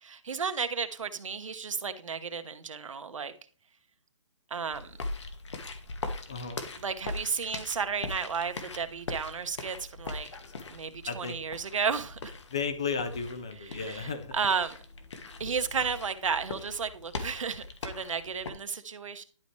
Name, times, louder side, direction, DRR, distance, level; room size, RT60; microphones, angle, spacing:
voice 1, 0.0-3.3 4.5-5.0 6.8-10.3 10.7-12.3 13.5-14.8 15.4-19.2, right 6 dB, 80° right, 1.3 m, -33 dB
sound 1, 4.7-18.5, left 3 dB, 65° left, 1.7 m, -41 dB
voice 2, 6.3-6.6 11.1-11.4 12.5-14.3, left 5 dB, 10° left, 0.3 m, -34 dB
11.5 x 5.4 x 3.2 m
hypercardioid pair, 175°, 16 cm